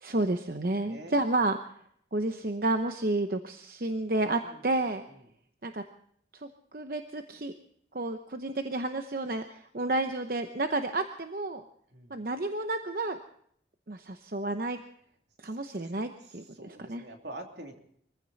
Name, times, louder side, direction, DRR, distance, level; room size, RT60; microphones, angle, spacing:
voice 1, 0.0-1.6 2.1-5.0 5.6-5.8 6.4-7.5 7.9-11.6 12.1-13.2 13.9-14.8 15.4-17.0, right 2 dB, 50° right, 7 dB, 0.9 m, -31 dB
voice 2, 0.8-1.2 4.4-4.7 5.1-5.2 11.9-12.1 15.4-15.9 16.2-17.8, right 1 dB, 75° right, 3 dB, 2.8 m, -46 dB
23.0 x 15.5 x 4.1 m, 0.65 s
head